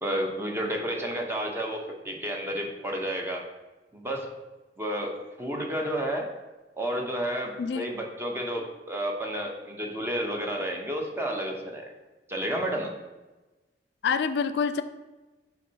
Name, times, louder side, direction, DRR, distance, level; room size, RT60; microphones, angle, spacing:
voice 1, 0.0-3.5 3.9-4.4 4.8-6.3 6.7-11.9 12.3-12.9, equal, 15° right, 1 dB, 0.9 m, -31 dB
voice 2, 14.0-14.8, left 6 dB, 70° left, 11 dB, 0.3 m, -26 dB
8.1 x 4.5 x 2.8 m, 1.1 s
head